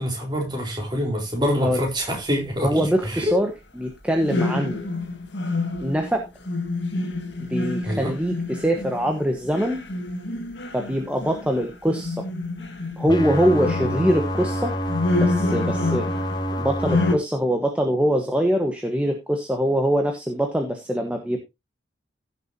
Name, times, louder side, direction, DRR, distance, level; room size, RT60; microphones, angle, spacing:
voice 1, 0.0-3.3 7.9-8.1, equal, 25° right, 4.1 m, -26 dB
voice 2, 2.6-4.8 5.8-6.3 7.5-9.8 10.7-12.3 13.0-14.7 15.2-16.1 16.6-21.4, equal, 5° right, 1.3 m, -23 dB
sound 1, 4.2-16.5 16.8-17.2, left 2 dB, 70° left, 2.0 m, -28 dB
sound 2, 13.1-17.1, equal, 25° left, 1.6 m, -27 dB
16.0 x 6.8 x 2.8 m
head